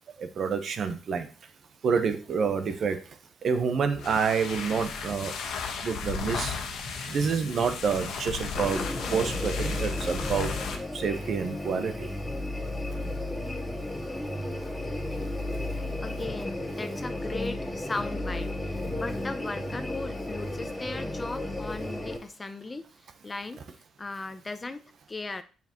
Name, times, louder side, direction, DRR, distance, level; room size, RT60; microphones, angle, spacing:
voice 1, 0.2-1.3 1.8-3.0 3.4-5.3 5.8-6.6 7.1-10.5 10.9-12.1, right 6 dB, 55° right, 9 dB, 0.9 m, -28 dB
sound 1, 3.8-10.9, left 5 dB, 80° left, 1.3 m, -35 dB
sound 2, 8.5-22.2, left 1 dB, 5° left, 1.8 m, -33 dB
voice 2, 16.0-22.8 23.2-23.6 24.0-24.8 25.1-25.4, left 3 dB, 25° left, 10 dB, 0.6 m, -37 dB
6.8 x 5.9 x 3.0 m, 0.36 s
cardioid pair, 90°, 0 cm